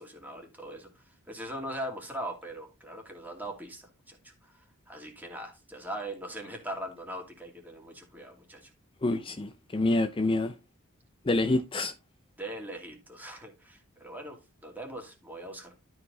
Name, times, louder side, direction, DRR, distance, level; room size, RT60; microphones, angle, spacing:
voice 1, 0.0-8.7 12.4-15.8, right 1 dB, 10° right, 2.5 m, -41 dB
voice 2, 9.0-10.5 11.3-11.9, left 2 dB, 25° left, 0.5 m, -27 dB
12.5 x 4.7 x 4.0 m
head